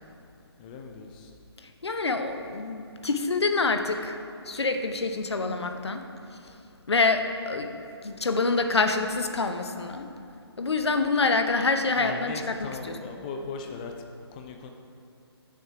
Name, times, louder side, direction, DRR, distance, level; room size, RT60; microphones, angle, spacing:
voice 1, 0.6-1.3 12.0-13.9 14.3-14.7, left 4 dB, 20° left, 3 dB, 0.4 m, -38 dB
voice 2, 1.8-4.2 4.5-6.1 6.9-7.7 8.0-10.1 10.6-13.0, left 3 dB, 75° left, 6 dB, 0.8 m, -26 dB
8.4 x 6.8 x 4.7 m, 2.6 s
figure-of-eight pair, 145°, 14 cm